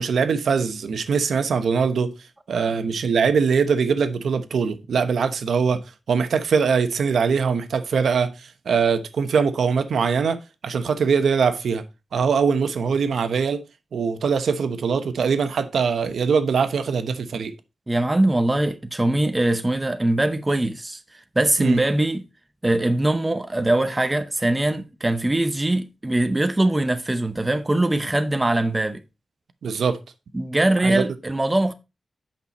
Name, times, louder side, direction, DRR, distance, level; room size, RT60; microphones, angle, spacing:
voice 1, 0.0-2.1 2.5-5.8 6.1-11.8 12.1-13.6 13.9-17.5 21.6-21.8 29.6-30.0 30.8-31.0, right 5 dB, 90° right, 1.0 m, -22 dB
voice 2, 17.9-21.0 21.4-22.2 22.6-29.0 30.3-31.7, right 1 dB, 15° right, 0.7 m, -22 dB
8.5 x 5.9 x 4.2 m
wide cardioid pair, 175°, 0 cm